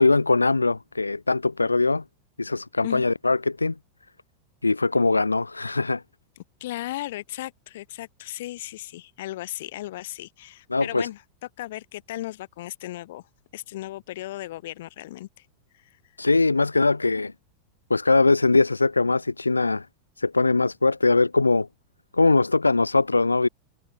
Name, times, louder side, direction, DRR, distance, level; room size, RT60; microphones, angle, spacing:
voice 1, 0.0-2.0 2.4-3.7 4.6-6.0 10.7-11.1 16.2-17.3 17.9-19.9 20.2-21.7 22.1-23.5, left 3 dB, 80° left, 0.7 m, -21 dB
voice 2, 6.4-11.2 11.6-13.2 13.5-15.5 15.7-16.0, left 15 dB, 55° left, 1.9 m, -36 dB
figure-of-eight pair, 90°, 0 cm